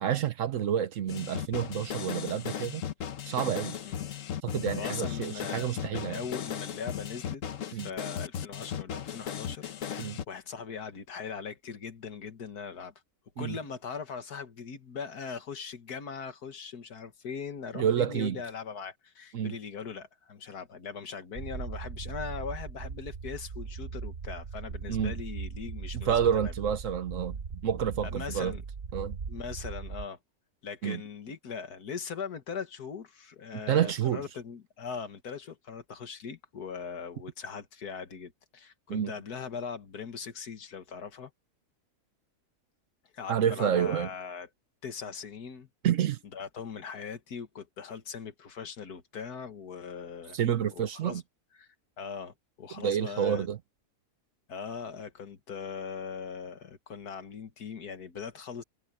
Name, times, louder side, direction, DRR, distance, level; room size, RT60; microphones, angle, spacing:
voice 1, 0.0-2.8 3.3-3.8 4.4-6.2 7.7-7.9 10.0-10.2 13.4-13.6 17.7-18.4 19.3-19.6 24.9-25.1 25.9-28.5 28.9-29.2 30.8-31.0 33.5-34.2 38.9-39.1 43.3-44.1 45.8-46.2 50.3-51.2 52.8-53.6, right 9 dB, 60° right, 1.0 m, -29 dB
sound 1, 1.1-10.2, left 9 dB, 60° left, 1.2 m, -36 dB
voice 2, 4.8-12.9 13.4-26.5 28.0-28.6 29.3-30.2 30.6-41.3 43.1-44.5 44.8-45.7 46.3-50.4 50.7-51.2 51.6-51.7 52.0-53.5 54.5-58.6, left 6 dB, 75° left, 2.1 m, -40 dB
sound 2, 21.3-30.1, right 5 dB, 45° right, 0.9 m, -39 dB
omnidirectional pair, 1.7 m